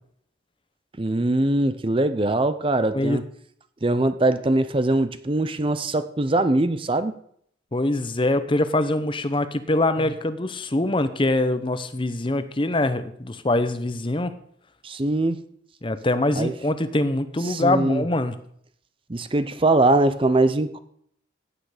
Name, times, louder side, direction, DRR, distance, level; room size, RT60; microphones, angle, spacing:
voice 1, 1.0-3.2 3.8-7.2 14.8-15.4 16.4-16.5 17.4-18.0 19.1-20.8, right 2 dB, 25° right, 12 dB, 0.6 m, -22 dB
voice 2, 7.7-14.3 15.8-18.3, left 2 dB, 25° left, 11 dB, 0.7 m, -23 dB
15.5 x 8.9 x 5.0 m, 0.66 s
head